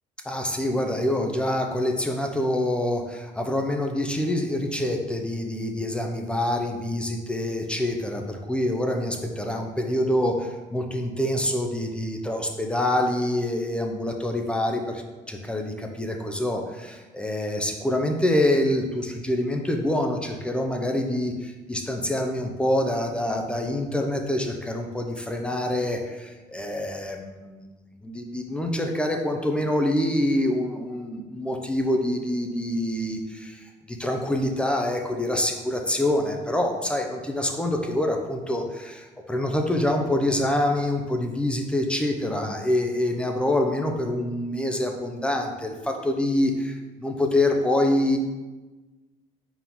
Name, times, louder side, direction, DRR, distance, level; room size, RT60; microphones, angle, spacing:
voice 1, 0.2-15.0 15.3-48.2, left 1 dB, 5° left, 2 dB, 0.6 m, -26 dB
4.8 x 3.7 x 5.4 m, 1.2 s
cardioid pair, 135°, 14 cm